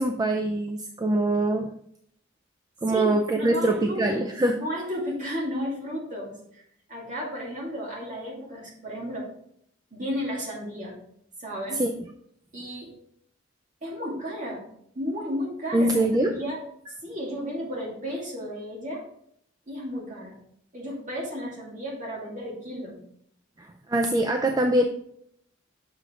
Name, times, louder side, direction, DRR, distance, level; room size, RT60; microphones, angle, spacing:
voice 1, 0.0-1.7 2.8-4.6 11.7-11.9 15.7-16.3 23.6-24.9, right 1 dB, 20° right, 4 dB, 0.4 m, -23 dB
voice 2, 2.9-4.3 4.6-6.6 6.9-9.3 9.9-11.0 11.4-11.8 12.5-12.9 13.8-14.7 14.9-15.9 16.4-16.6 17.0-19.1 19.7-20.4 20.7-23.0, equal, 40° right, -3 dB, 2.5 m, -33 dB
7.1 x 4.9 x 3.8 m, 0.69 s
head